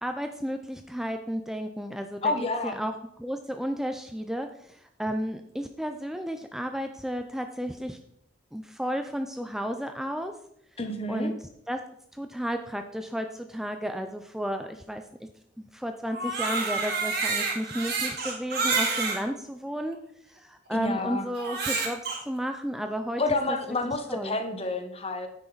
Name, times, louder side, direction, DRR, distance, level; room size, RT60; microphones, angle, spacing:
voice 1, 0.0-2.3 2.6-2.9 3.2-8.0 8.5-10.3 11.1-11.3 11.7-11.8 12.1-15.0 15.6-20.0 20.3-22.0 22.3-23.2 24.1-24.4, equal, ahead, 6 dB, 0.5 m, -32 dB
voice 2, 2.2-2.8 10.8-11.3 20.7-21.3 23.2-25.3, left 2 dB, 35° left, 7 dB, 1.1 m, -29 dB
Crying sobbing, 16.1-19.2 19.9-20.0 21.4-22.2, right 4 dB, 60° right, 2.8 m, -28 dB
9.7 x 9.0 x 4.0 m, 0.74 s
head